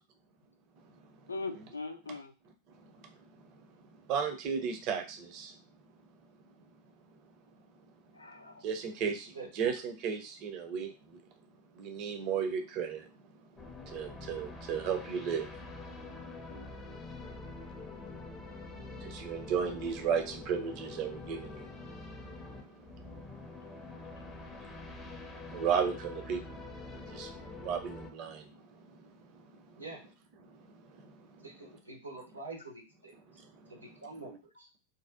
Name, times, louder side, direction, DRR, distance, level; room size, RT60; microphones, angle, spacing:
voice 1, 1.3-2.3 8.1-8.7 15.9-16.7, left 3 dB, 80° left, 7 dB, 0.3 m, -42 dB
voice 2, 2.7-3.5 3.8-5.8 7.6-7.7 8.6-11.2 11.8-13.1 13.8-16.5 16.9-29.8 30.4-31.5 33.3-33.6, right 7 dB, 40° right, 5 dB, 0.5 m, -37 dB
sound 1, 13.6-28.1, left 3 dB, 15° left, 0.4 m, -46 dB
voice 3, 31.4-33.4 33.7-34.7, right 3 dB, 85° right, -1 dB, 0.7 m, -46 dB
2.6 x 2.0 x 2.4 m, 0.32 s
figure-of-eight pair, 90°, 0 cm